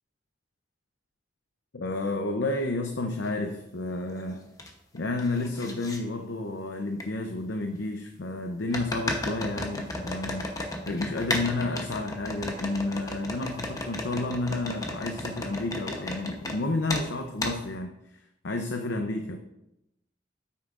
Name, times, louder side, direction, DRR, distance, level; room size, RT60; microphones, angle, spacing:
voice 1, 1.7-4.5 4.9-10.5 10.9-18.2 18.4-19.4, left 2 dB, 80° left, 4 dB, 0.7 m, -31 dB
sound 1, 3.2-3.3 3.9-4.7 5.0-6.0 7.0-7.1 8.7-16.6 16.9-17.1 17.4-17.6, left 2 dB, 20° left, 0.9 m, -34 dB
9.6 x 8.3 x 2.5 m, 0.86 s
head